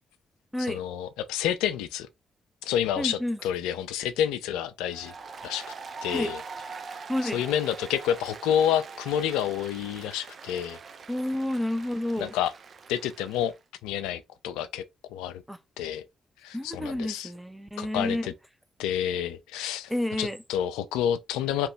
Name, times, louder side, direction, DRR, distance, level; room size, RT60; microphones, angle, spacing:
voice 1, 0.7-2.1 2.6-5.1 5.4-5.7 6.0-6.4 7.2-10.8 12.2-12.5 12.9-13.5 13.8-14.8 15.1-15.4 15.8-16.0 16.4-17.3 17.8-18.3 18.8-19.9 20.2-21.7, left 10 dB, 80° left, 0.3 m, -29 dB
voice 2, 3.0-3.4 6.1-6.3 7.1-7.4 11.1-12.3 15.5-15.6 16.5-18.3 19.9-20.4, left 1 dB, 5° right, 0.6 m, -30 dB
Applause, 4.9-13.6, right 5 dB, 55° right, 0.5 m, -43 dB
2.8 x 2.2 x 3.2 m
hypercardioid pair, 45°, 0 cm